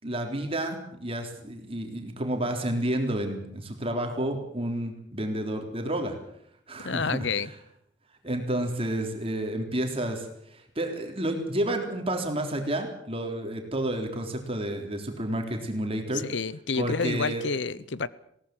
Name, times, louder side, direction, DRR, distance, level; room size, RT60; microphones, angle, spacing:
voice 1, 0.0-6.2 6.7-7.3 8.2-16.2 16.7-17.4, right 1 dB, 30° right, 3.8 m, -30 dB
voice 2, 6.8-7.5 16.1-18.1, left 4 dB, 75° left, 0.8 m, -29 dB
20.5 x 18.0 x 7.9 m
head